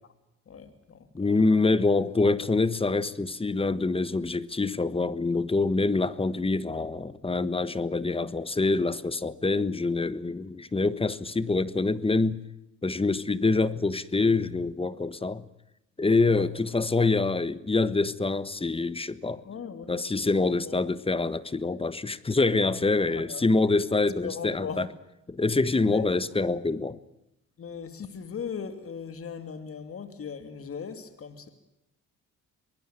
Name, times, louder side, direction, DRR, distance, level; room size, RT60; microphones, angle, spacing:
voice 1, 0.5-1.3 9.5-9.6 16.3-16.5 19.4-20.0 20.4-20.8 23.1-23.5 24.2-24.9 25.9-26.1 27.6-31.5, left 6 dB, 50° left, 3.0 m, -39 dB
voice 2, 1.1-12.4 12.8-15.4 16.0-19.4 19.9-24.9 25.3-27.0, left 3 dB, 20° left, 1.4 m, -25 dB
24.5 x 20.0 x 9.0 m
cardioid pair, 90°, 30 cm